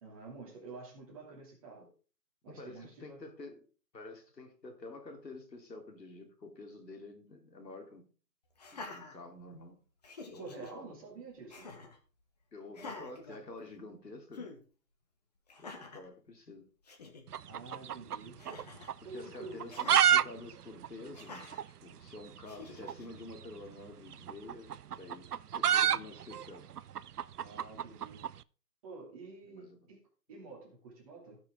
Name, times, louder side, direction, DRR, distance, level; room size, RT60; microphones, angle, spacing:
voice 1, 0.0-1.9 2.4-3.2 10.4-11.7 17.5-18.3 19.0-19.6 27.4-28.2 28.8-30.0 30.3-31.4, right 3 dB, 20° right, -2 dB, 2.7 m, -48 dB
voice 2, 2.5-3.6 3.9-8.0 8.7-9.8 10.3-10.9 12.5-14.5 15.6-16.7 19.0-21.5 21.8-24.7 25.0-25.3 25.6-26.7 29.4-30.0, left 2 dB, 80° left, 3 dB, 3.3 m, -49 dB
Laughter, 8.6-9.7 10.0-10.7 11.5-12.0 12.7-13.9 14.3-14.6 15.5-16.1 16.6-16.7 16.9-17.2 18.4-19.0 19.7-20.0 21.1-21.6 22.5-23.1, left 3 dB, 25° left, 1.3 m, -47 dB
sound 1, 17.3-18.6 18.9-19.0 19.5-20.2 20.5-20.6 20.8-20.9 21.5-21.6 22.8-23.0 24.1-28.3, right 9 dB, 65° right, 0.5 m, -28 dB
16.5 x 6.1 x 3.7 m, 0.37 s
hypercardioid pair, 165°, 50 cm